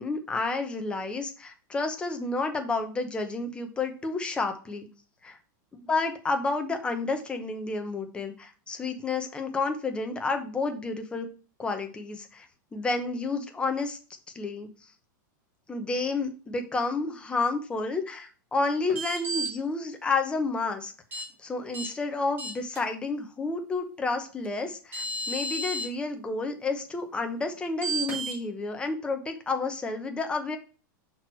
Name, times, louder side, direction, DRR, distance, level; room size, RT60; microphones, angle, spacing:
voice 1, 0.0-4.9 5.2-5.4 5.8-11.3 11.6-12.5 12.7-14.0 14.3-14.7 15.7-20.9 21.4-30.6, left 3 dB, 10° left, 5 dB, 0.9 m, -30 dB
sound 1, 18.9-19.5 21.1-21.2 21.7-21.9 22.4-22.8 24.4-24.5 24.9-25.9 27.8-28.4, right 2 dB, 20° right, 2.1 m, -32 dB
5.8 x 4.6 x 4.6 m, 0.36 s
supercardioid pair, 155°, 11 cm